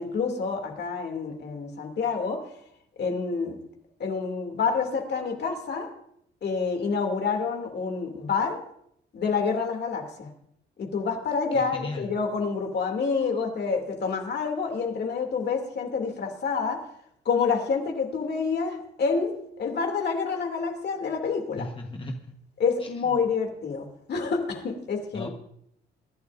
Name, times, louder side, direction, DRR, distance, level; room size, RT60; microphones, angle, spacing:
voice 1, 0.0-2.5 3.0-3.6 4.0-5.9 6.4-8.6 9.1-10.3 10.8-16.8 17.2-21.7 22.6-25.3, left 5 dB, 55° left, 2 dB, 2.7 m, -28 dB
voice 2, 11.5-12.1 21.6-22.3 22.8-23.2 25.1-25.3, left 2 dB, 25° left, 3 dB, 1.3 m, -37 dB
24.0 x 11.5 x 2.6 m, 0.72 s
cardioid pair, 90°, 20 cm